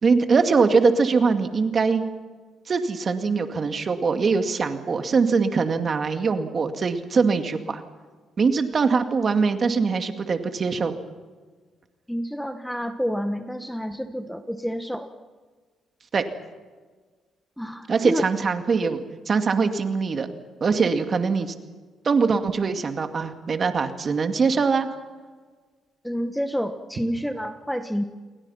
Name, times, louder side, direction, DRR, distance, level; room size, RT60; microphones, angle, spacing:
voice 1, 0.0-2.1 2.7-7.8 8.4-10.9 16.1-16.2 17.9-20.3 20.6-21.5 22.0-24.9, right 4 dB, 45° right, 6 dB, 2.3 m, -22 dB
voice 2, 12.1-15.1 17.6-18.2 26.0-28.0, equal, ahead, 8 dB, 1.3 m, -29 dB
28.5 x 22.5 x 5.8 m, 1.4 s
cardioid pair, 90°, 0 cm